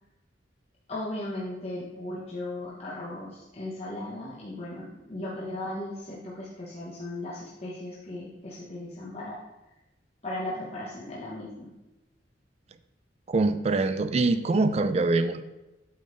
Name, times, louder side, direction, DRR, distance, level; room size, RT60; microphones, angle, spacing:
voice 1, 0.9-9.4 10.2-11.7, left 1 dB, 35° left, -6 dB, 0.9 m, -37 dB
voice 2, 13.3-15.4, right 3 dB, 35° right, 11 dB, 0.3 m, -24 dB
8.4 x 3.7 x 3.8 m, 1.0 s
head